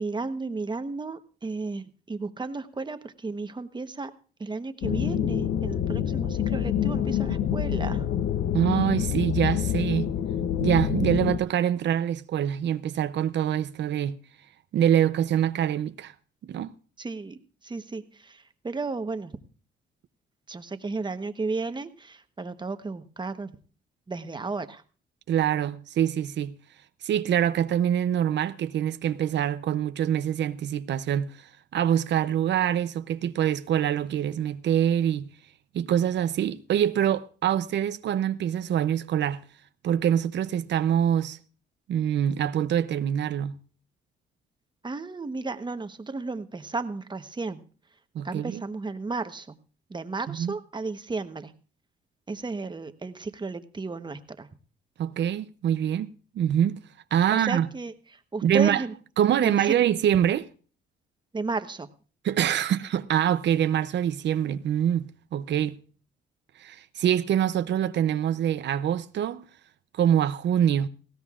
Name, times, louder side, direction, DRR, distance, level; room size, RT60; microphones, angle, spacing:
voice 1, 0.0-4.1 4.4-8.1 17.0-19.3 20.5-23.6 24.1-24.8 44.8-47.6 48.2-49.6 49.9-51.5 52.3-54.5 57.3-58.9 59.4-59.7 61.3-61.9, right 3 dB, 20° right, 1.1 m, -33 dB
sound 1, 4.8-11.4, left 9 dB, 65° left, 0.8 m, -27 dB
voice 2, 8.5-10.1 10.6-14.2 14.7-16.1 16.4-16.7 25.3-26.6 27.0-35.3 35.7-39.4 39.8-41.4 41.9-43.6 48.1-48.6 50.3-50.5 55.0-56.1 56.3-56.8 57.1-57.7 58.4-58.8 59.2-60.5 62.2-65.8 66.6-69.4 69.9-70.9, right 10 dB, 65° right, 0.6 m, -25 dB
19.0 x 16.0 x 2.5 m
cardioid pair, 90°, 20 cm